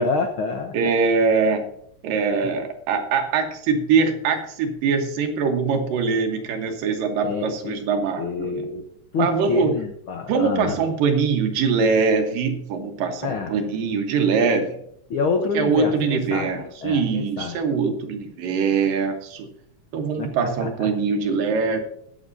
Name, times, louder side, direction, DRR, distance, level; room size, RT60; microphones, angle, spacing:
voice 1, 0.0-0.7 7.2-7.8 8.2-8.8 9.1-10.7 13.2-13.5 15.1-16.5 16.8-17.6 20.2-20.9, left 4 dB, 85° left, 4 dB, 1.1 m, -27 dB
voice 2, 0.7-1.6 2.0-8.7 9.2-9.7 10.3-14.8 15.5-19.5 19.9-21.8, right 5 dB, 80° right, 5 dB, 3.0 m, -22 dB
21.0 x 7.3 x 2.7 m, 0.71 s
omnidirectional pair, 3.8 m